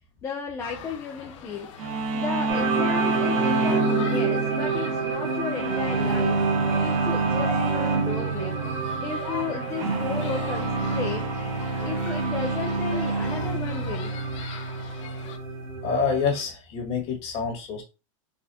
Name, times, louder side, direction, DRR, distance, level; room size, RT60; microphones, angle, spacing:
voice 1, 0.2-1.7 2.1-6.4 6.8-8.6 9.0-11.4 11.8-14.2, left 5 dB, 15° left, 0.4 m, -34 dB
sound 1, 0.6-15.4, left 6 dB, 60° left, 0.9 m, -42 dB
sound 2, 1.8-16.3, right 3 dB, 80° right, 1.3 m, -28 dB
sound 3, 2.5-16.4, right 4 dB, 25° right, 1.0 m, -31 dB
voice 2, 15.8-17.8, left 5 dB, 35° left, 1.7 m, -27 dB
4.2 x 3.8 x 2.7 m
supercardioid pair, 160°, 17 cm